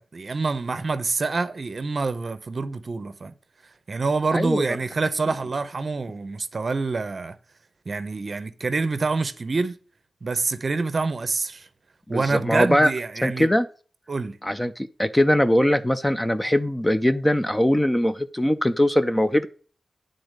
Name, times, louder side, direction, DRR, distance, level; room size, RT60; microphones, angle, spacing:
voice 1, 0.0-3.3 3.9-7.4 7.9-9.7 10.2-11.7 12.1-13.5 14.1-14.4, right 3 dB, 40° right, 0.7 m, -26 dB
voice 2, 4.3-4.6 12.1-12.9 13.2-13.7 14.4-19.5, left 1 dB, 10° left, 0.4 m, -21 dB
9.9 x 3.9 x 6.4 m
wide cardioid pair, 170°, 0 cm